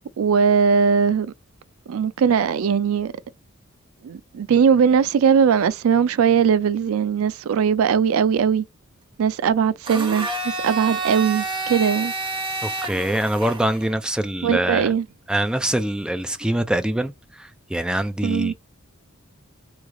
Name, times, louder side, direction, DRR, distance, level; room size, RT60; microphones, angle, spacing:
voice 1, 0.2-1.3 1.9-3.1 4.0-8.6 9.2-12.1 14.4-15.0 18.2-18.5, right 7 dB, 85° right, 0.4 m, -19 dB
Domestic sounds home sounds, 9.9-13.9, right 2 dB, 25° right, 1.0 m, -29 dB
voice 2, 12.6-14.9 15.3-17.1 17.4-18.5, right 1 dB, 5° right, 0.3 m, -24 dB
3.1 x 2.3 x 3.6 m
head